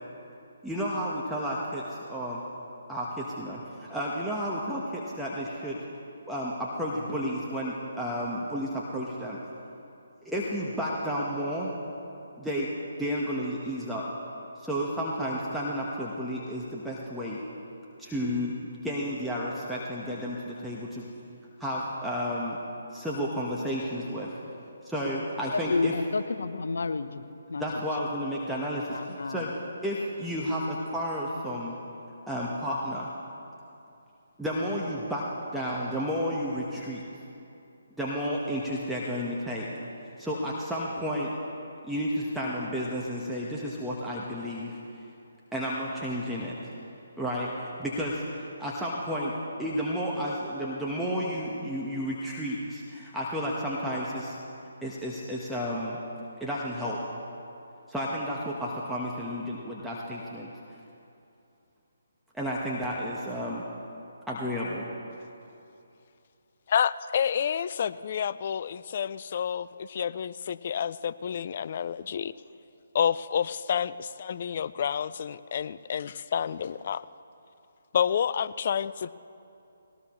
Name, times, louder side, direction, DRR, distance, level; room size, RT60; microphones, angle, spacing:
voice 1, 0.6-2.4 2.9-5.8 6.2-9.4 10.2-11.7 12.4-12.7 13.0-14.1 14.6-17.4 18.0-21.0 21.6-22.6 22.9-24.3 24.8-25.9 27.5-29.5 29.8-31.7 32.3-33.1 34.4-35.2 35.5-37.0 38.0-39.7 40.2-41.3 41.8-44.8 45.5-46.5 47.2-49.3 49.6-54.4 54.8-56.0 56.4-57.0 57.9-60.5 62.3-63.6 64.3-64.9, equal, ahead, -6 dB, 1.3 m, -32 dB
voice 2, 25.5-27.2 27.5-27.7 28.9-29.5, left 3 dB, 65° left, 11 dB, 0.8 m, -30 dB
voice 3, 66.7-72.3 72.9-77.0 77.9-79.1, left 8 dB, 45° left, 16 dB, 0.4 m, -29 dB
20.5 x 18.0 x 3.2 m, 2.7 s
figure-of-eight pair, 145°, 0 cm